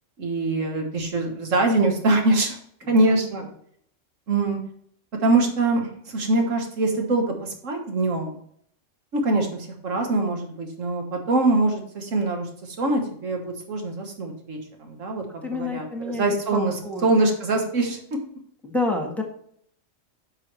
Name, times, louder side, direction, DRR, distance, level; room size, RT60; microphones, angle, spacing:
voice 1, 0.2-2.6 2.9-3.5 4.3-4.6 5.2-8.4 9.1-12.5 12.8-16.7 17.0-18.2, right 2 dB, 85° right, 3 dB, 1.8 m, -23 dB
voice 2, 2.8-3.1 15.4-17.1 18.6-19.2, left 2 dB, ahead, 2 dB, 1.3 m, -29 dB
9.1 x 5.7 x 3.2 m, 0.66 s
omnidirectional pair, 1.3 m